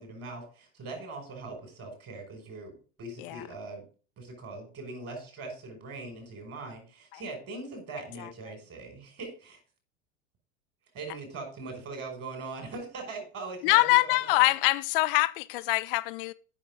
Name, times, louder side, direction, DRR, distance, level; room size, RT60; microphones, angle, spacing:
voice 1, 0.0-3.8 4.2-9.6 10.9-14.4, right 3 dB, 35° right, 6.1 m, -41 dB
voice 2, 13.6-16.3, left 21 dB, 45° left, 0.6 m, -24 dB
14.0 x 6.8 x 3.7 m
figure-of-eight pair, 80°, 39 cm